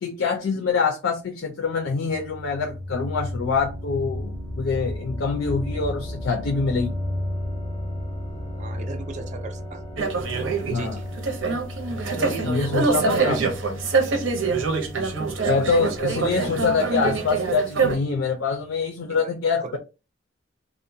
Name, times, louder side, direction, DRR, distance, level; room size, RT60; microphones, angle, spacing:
voice 1, 0.0-7.0 10.7-11.0 12.4-13.4 13.7-13.8 15.4-19.8, left 5 dB, 85° left, 0.5 m, -25 dB
sound 1, 1.7-18.4, left 1 dB, 25° left, 0.4 m, -34 dB
voice 2, 8.6-9.8 10.7-11.0 19.1-19.3 19.6-19.8, right 4 dB, 40° right, 0.3 m, -37 dB
sound 2, 10.0-18.0, right 4 dB, 90° right, 0.6 m, -24 dB
2.5 x 2.1 x 2.6 m
head